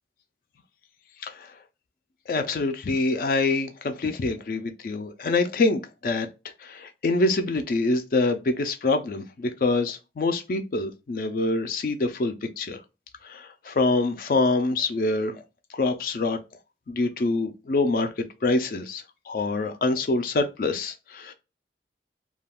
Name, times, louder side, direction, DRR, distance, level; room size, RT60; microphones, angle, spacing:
voice 1, 2.3-6.3 6.6-12.8 13.2-15.3 15.7-16.4 16.9-18.1 18.4-21.3, left 3 dB, 50° left, 0.4 m, -25 dB
2.3 x 2.3 x 3.4 m
head